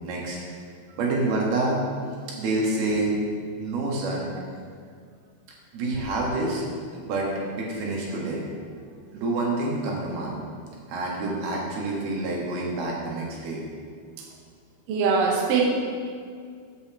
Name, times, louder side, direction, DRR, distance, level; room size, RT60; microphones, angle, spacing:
voice 1, 0.0-0.6 1.0-1.8 2.4-3.2 3.5-4.3 5.7-6.6 6.9-7.3 7.6-8.4 9.1-10.4 10.9-13.6, right 2 dB, 60° right, -3 dB, 3.1 m, -27 dB
voice 2, 14.9-15.7, right 5 dB, 80° right, -1 dB, 1.9 m, -22 dB
8.1 x 5.5 x 7.2 m, 2.1 s
omnidirectional pair, 5.5 m